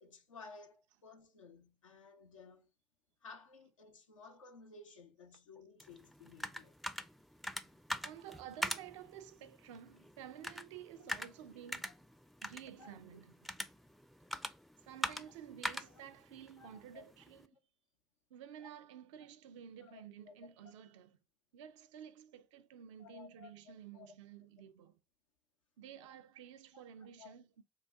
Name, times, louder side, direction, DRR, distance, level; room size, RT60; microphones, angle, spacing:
voice 1, 0.0-2.7 3.2-6.7 11.8-11.9 12.8-13.0 15.9-16.0 16.6-17.0 18.6-18.7 19.8-20.3 23.0-23.5 23.9-24.2 27.2-27.3, left 4 dB, 85° left, 0.6 m, -56 dB
sound 1, 5.8-17.5, equal, ahead, 0.4 m, -44 dB
voice 2, 8.0-11.9 12.4-13.5 14.8-17.6 18.3-21.2 21.5-25.0 25.8-27.6, right 9 dB, 75° right, 0.4 m, -52 dB
5.2 x 2.2 x 3.5 m
figure-of-eight pair, 45°, 16 cm